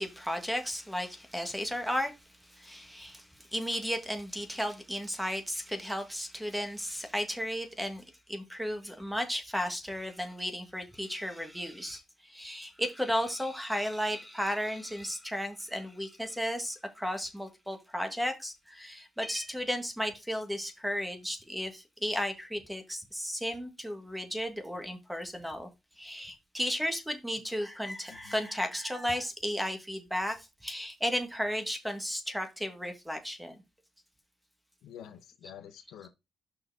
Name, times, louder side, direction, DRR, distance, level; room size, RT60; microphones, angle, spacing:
voice 1, 0.0-2.1 2.5-8.0 8.3-25.7 26.0-33.6, equal, ahead, 1.8 m, -34 dB
voice 2, 34.8-36.1, left 9 dB, 85° left, 0.9 m, -48 dB
5.7 x 4.8 x 4.7 m
cardioid pair, 90°, 0 cm